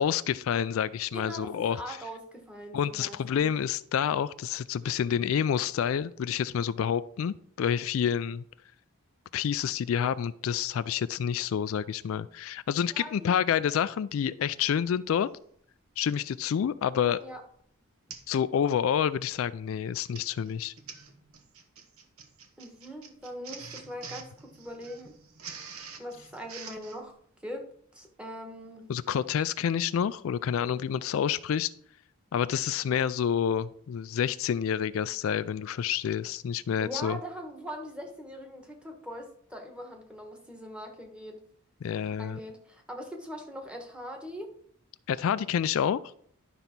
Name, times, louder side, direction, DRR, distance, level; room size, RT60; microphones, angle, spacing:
voice 1, 0.0-2.0 2.7-8.4 9.3-15.3 16.0-17.2 18.3-20.7 28.9-31.7 32.3-37.2 41.8-42.4 45.1-46.0, left 8 dB, 70° left, 15 dB, 0.3 m, -28 dB
voice 2, 1.1-3.5 12.9-13.4 17.2-17.4 22.6-25.2 26.0-27.1 27.4-28.9 29.4-29.5 36.8-41.4 42.2-44.5, equal, 5° right, 3 dB, 1.3 m, -41 dB
Printer, 14.9-15.0 16.1-16.4 17.0-17.2 17.5-17.6 18.1-18.4 18.7-19.0 19.7-27.0, right 6 dB, 85° right, 1.1 m, -46 dB
11.5 x 4.0 x 5.9 m, 0.64 s
head